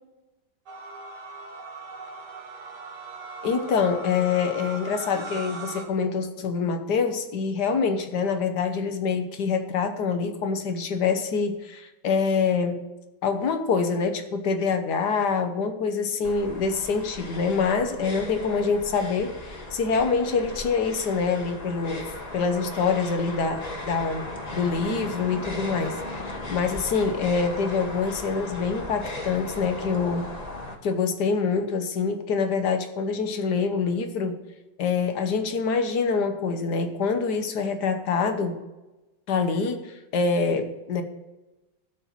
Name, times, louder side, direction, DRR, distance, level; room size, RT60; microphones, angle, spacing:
sound 1, 0.7-5.8, right 2 dB, 75° right, 2.0 m, -39 dB
voice 1, 3.4-12.8 13.2-22.0 22.3-24.3 24.5-30.3 30.8-34.4 34.8-38.6 39.3-41.0, left 5 dB, 70° left, 7 dB, 1.6 m, -25 dB
sound 2, 16.2-30.7, left 2 dB, 25° left, 1.2 m, -36 dB
12.5 x 4.4 x 7.2 m, 1.1 s
omnidirectional pair, 1.8 m